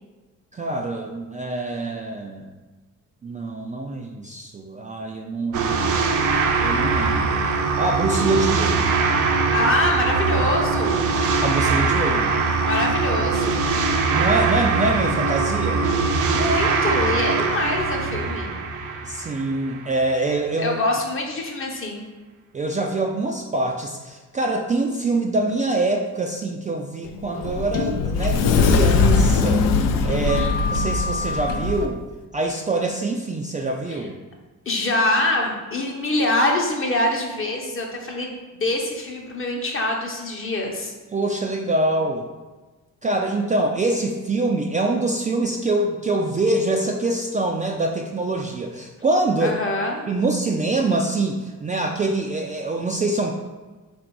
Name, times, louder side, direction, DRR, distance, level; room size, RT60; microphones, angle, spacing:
voice 1, 0.5-2.5 3.2-6.0 6.6-7.5 7.8-8.9 11.4-12.4 14.1-15.9 19.0-20.8 22.5-29.7 30.0-32.0 32.3-34.2 41.1-42.3 43.0-49.6 50.1-53.3, right 2 dB, 25° right, 1 dB, 0.3 m, -24 dB
sound 1, 5.5-19.9, right 4 dB, 60° right, 0.6 m, -22 dB
voice 2, 9.5-11.1 12.6-13.7 16.3-18.5 20.6-22.0 30.2-30.6 33.9-34.1 34.7-40.9 49.4-50.0, left 1 dB, 40° left, 0 dB, 0.9 m, -24 dB
Sliding door, 27.0-31.9, left 4 dB, 70° left, 0.5 m, -20 dB
3.4 x 2.6 x 4.5 m, 1.3 s
supercardioid pair, 75°, 34 cm